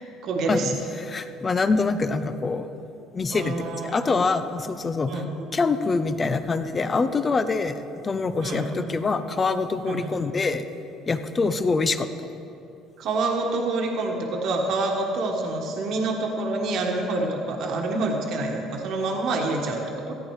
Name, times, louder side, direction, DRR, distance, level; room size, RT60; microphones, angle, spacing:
voice 1, 0.2-0.7 3.3-4.0 5.1-5.3 8.4-8.9 9.9-10.1 13.0-20.1, right 2 dB, 65° right, 1 dB, 1.5 m, -27 dB
voice 2, 1.0-2.7 3.1-5.2 5.5-10.6 11.1-12.1, left 4 dB, 30° left, 10 dB, 0.7 m, -25 dB
15.0 x 8.9 x 4.8 m, 2.8 s
supercardioid pair, 85°, 0 cm